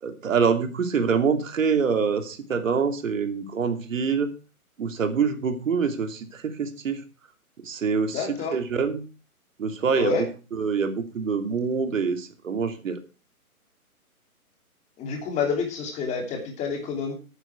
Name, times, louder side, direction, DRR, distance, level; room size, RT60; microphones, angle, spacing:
voice 1, 0.0-4.3 4.8-7.0 7.6-8.3 8.5-9.0 9.6-10.2 10.6-13.0, right 5 dB, 60° right, 7 dB, 2.9 m, -25 dB
voice 2, 8.1-8.6 9.9-10.2 15.0-17.1, left 5 dB, 15° left, 3 dB, 3.0 m, -28 dB
14.0 x 9.7 x 4.5 m, 0.33 s
hypercardioid pair, 145°, 44 cm